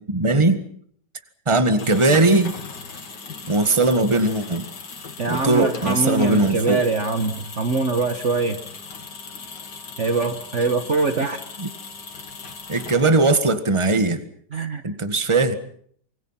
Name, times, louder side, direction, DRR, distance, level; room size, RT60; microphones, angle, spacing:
voice 1, 0.1-0.6 1.4-2.5 3.5-4.7 5.3-6.8 11.6-11.7 12.7-14.2 14.8-15.5, right 2 dB, 15° right, 10 dB, 1.8 m, -19 dB
sound 1, 1.6-13.4, left 4 dB, 80° left, 2.9 m, -38 dB
voice 2, 5.2-8.6 10.0-11.4 14.5-14.8, right 3 dB, 45° right, 8 dB, 1.6 m, -23 dB
27.0 x 24.5 x 5.9 m, 0.62 s
omnidirectional pair, 1.8 m